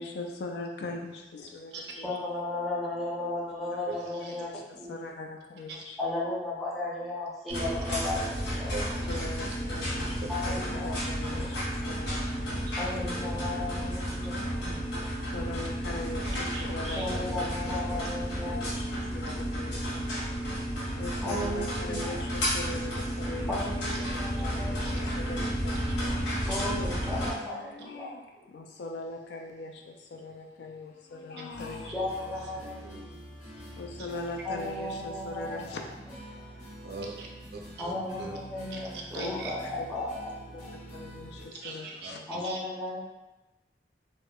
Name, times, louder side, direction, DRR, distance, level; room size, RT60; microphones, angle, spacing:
voice 1, 0.0-2.2 3.7-3.9 4.2-6.0 9.1-12.8 13.1-13.4 13.7-13.9 15.3-20.5 21.0-26.0 27.6-28.3 28.5-31.9 32.6-32.7 33.8-35.8 39.1-39.9 40.5-40.6 40.9-42.3, left 2 dB, 70° left, 2 dB, 0.3 m, -41 dB
voice 2, 1.9-4.9 6.0-8.7 10.3-11.0 11.3-11.6 12.8-14.8 16.8-19.2 21.2-22.2 23.5-25.2 26.5-28.5 31.8-33.4 34.4-35.6 36.3-36.4 37.8-40.7 42.3-43.0, left 2 dB, ahead, -7 dB, 0.5 m, -35 dB
voice 3, 3.9-4.4 5.7-5.8 8.7-9.3 10.2-10.3 12.7-12.8 14.3-14.6 16.2-16.6 16.9-17.0 23.9-24.0 24.3-24.4 24.8-24.9 25.9-26.0 27.1-27.3 32.3-33.0 34.0-34.1 36.8-37.9 38.2-38.4 38.7-39.6 41.5-42.7, right 3 dB, 65° right, 0 dB, 0.4 m, -42 dB
sound 1, 7.5-27.3, equal, 90° left, 0.8 m, -32 dB
sound 2, 31.5-41.5, equal, 45° left, 0.8 m, -46 dB
2.7 x 2.0 x 2.2 m, 1.1 s
head